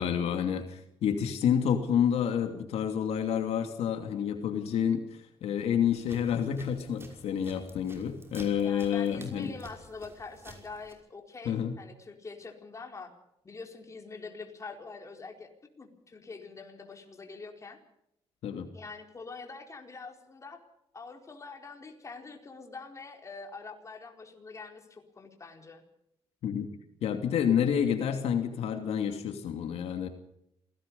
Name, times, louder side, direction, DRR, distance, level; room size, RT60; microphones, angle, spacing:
voice 1, 0.0-9.5 11.4-11.8 18.4-18.7 26.4-26.7 27.0-30.1, left 8 dB, 80° left, 6 dB, 2.7 m, -29 dB
sound 1, 5.9-10.9, right 2 dB, 25° right, 5.6 m, -51 dB
voice 2, 8.6-13.1 13.4-15.5 15.8-17.8 18.7-20.6 20.9-25.8, left 4 dB, 30° left, 3 dB, 4.4 m, -45 dB
27.5 x 18.0 x 5.5 m, 0.77 s
cardioid pair, 105°, 10 cm